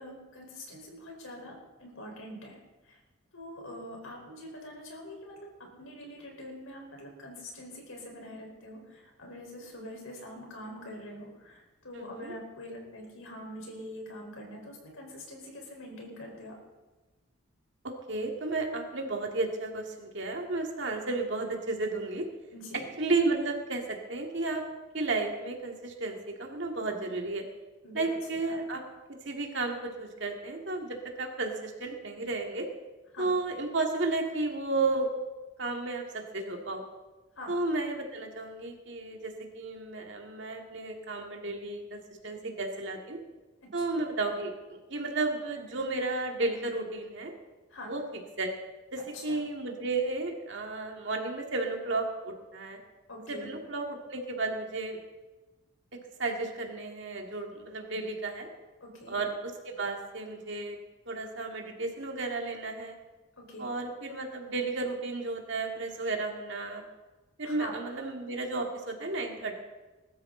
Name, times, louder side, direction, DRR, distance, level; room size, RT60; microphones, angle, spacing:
voice 1, 0.0-2.6 2.9-3.0 3.3-16.5 22.5-22.9 27.8-28.0 28.5-28.8 33.1-33.3 37.4-37.5 47.7-47.9 49.0-49.4 53.1-53.5 58.8-59.2 63.4-63.7 67.4-67.7, left 1 dB, 80° left, 0 dB, 4.4 m, -44 dB
voice 2, 11.9-12.4 17.8-22.3 22.7-24.7 24.9-27.4 27.9-28.8 29.2-32.7 33.2-35.1 35.6-36.8 37.5-43.2 43.7-47.3 47.8-48.0 48.4-48.5 48.9-52.8 53.3-55.0 56.2-58.5 59.1-60.8 61.1-63.0 63.6-66.8 67.4-69.5, right 3 dB, 60° right, 2 dB, 2.2 m, -33 dB
21.0 x 13.0 x 3.9 m, 1.2 s
head